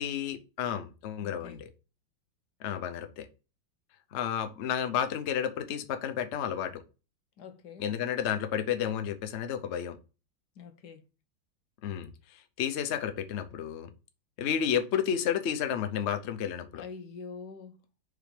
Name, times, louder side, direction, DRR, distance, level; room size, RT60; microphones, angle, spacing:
voice 1, 0.0-1.7 2.6-3.3 4.1-6.8 7.8-10.0 11.8-12.1 12.6-13.9 14.4-16.8, left 9 dB, 80° left, 0.6 m, -31 dB
voice 2, 1.2-1.6 7.4-7.8 10.6-11.0 16.7-17.8, left 5 dB, 65° left, 1.3 m, -45 dB
5.0 x 3.9 x 5.0 m
omnidirectional pair, 2.1 m